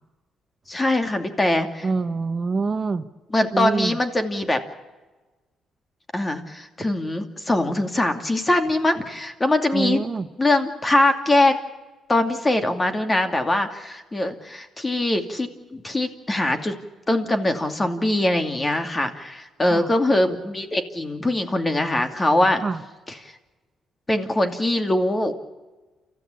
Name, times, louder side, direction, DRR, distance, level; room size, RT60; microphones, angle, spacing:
voice 1, 0.7-1.9 3.3-4.6 6.1-10.0 10.4-11.6 12.1-16.7 17.1-22.6 24.1-25.3, left 1 dB, 20° left, 7 dB, 2.6 m, -22 dB
voice 2, 1.8-3.0 3.5-4.0 9.7-10.3 19.7-19.9 22.6-22.8, right 4 dB, 35° right, 10 dB, 1.0 m, -25 dB
29.5 x 14.5 x 8.5 m, 1.2 s
cardioid pair, 90°, 0 cm